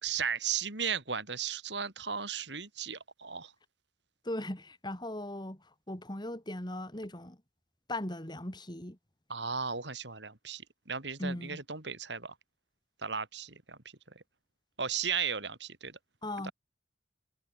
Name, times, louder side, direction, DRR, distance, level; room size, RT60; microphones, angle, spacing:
voice 1, 0.0-3.5 9.3-12.3 13.0-13.8 14.8-16.0 16.4-16.5, right 6 dB, 70° right, 4.0 m, -35 dB
voice 2, 4.2-7.4 7.9-9.0 11.2-11.6 16.2-16.5, left 1 dB, 25° left, 3.7 m, -38 dB
head